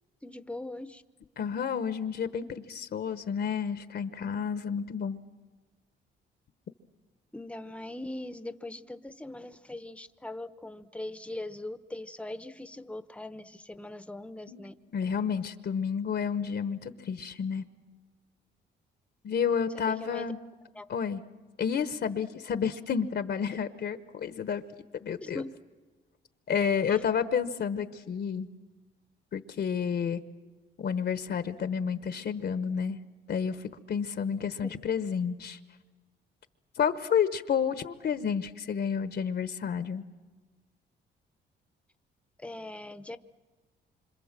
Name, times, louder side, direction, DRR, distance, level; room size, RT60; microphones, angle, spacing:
voice 1, 0.2-1.0 7.3-14.7 19.9-20.3 20.7-20.9 25.2-25.5 26.9-27.0 42.4-43.2, left 1 dB, 5° left, 12 dB, 1.0 m, -40 dB
voice 2, 1.4-5.2 14.5-14.6 14.9-17.7 19.2-20.4 20.9-21.2 21.6-24.6 25.0-25.4 26.5-28.5 29.3-30.2 30.8-33.0 33.3-35.6 36.8-40.0, left 7 dB, 55° left, 11 dB, 1.1 m, -30 dB
26.5 x 26.0 x 7.5 m, 1.3 s
cardioid pair, 90°, 20 cm